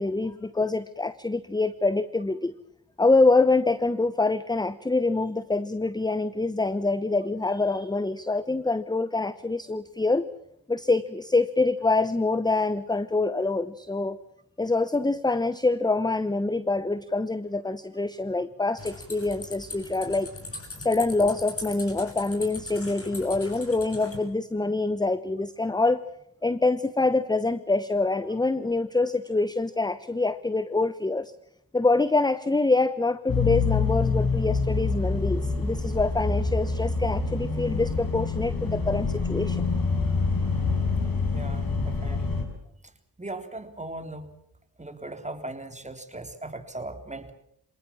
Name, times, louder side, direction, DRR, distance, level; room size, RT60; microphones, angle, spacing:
voice 1, 0.0-2.5 3.0-10.3 10.7-14.2 14.6-20.3 20.8-26.1 26.4-31.3 31.7-39.6, left 3 dB, 10° left, 15 dB, 0.9 m, -25 dB
sound 1, 18.8-24.2, left 2 dB, 30° left, 7.3 m, -40 dB
sound 2, 33.3-42.4, left 4 dB, 50° left, 6.2 m, -26 dB
voice 2, 41.3-42.4 42.8-42.9 43.2-44.3 44.8-47.3, right 2 dB, 15° right, 7 dB, 3.5 m, -38 dB
25.5 x 19.0 x 7.3 m, 0.73 s
supercardioid pair, 50°, 44 cm